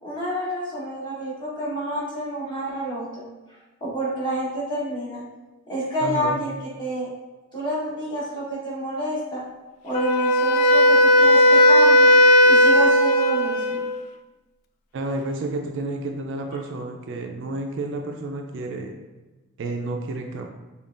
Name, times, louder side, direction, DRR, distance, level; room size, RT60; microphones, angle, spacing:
voice 1, 0.0-3.3 3.8-5.2 5.7-6.5 6.8-7.1 7.5-9.4 9.8-12.1 12.4-13.8, right 1 dB, 20° left, -7 dB, 1.1 m, -28 dB
voice 2, 6.0-6.4 14.9-19.0 19.6-20.5, right 2 dB, 60° right, 3 dB, 0.4 m, -30 dB
Wind instrument woodwind instrument, 9.9-14.0, equal, 90° left, 0.3 m, -16 dB
5.3 x 2.3 x 2.5 m, 1.2 s
head